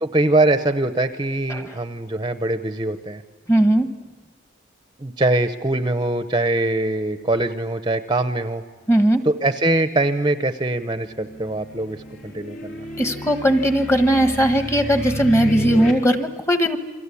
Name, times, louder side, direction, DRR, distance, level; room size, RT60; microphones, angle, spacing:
voice 1, 0.0-3.2 5.0-8.6 9.2-12.8, right 2 dB, 20° right, 9 dB, 0.8 m, -22 dB
voice 2, 3.5-3.9 8.9-9.2 13.0-16.8, right 1 dB, 15° left, 8 dB, 1.3 m, -18 dB
sound 1, 10.9-15.9, left 2 dB, 70° left, 4.0 m, -32 dB
29.5 x 23.5 x 8.5 m, 1.3 s
head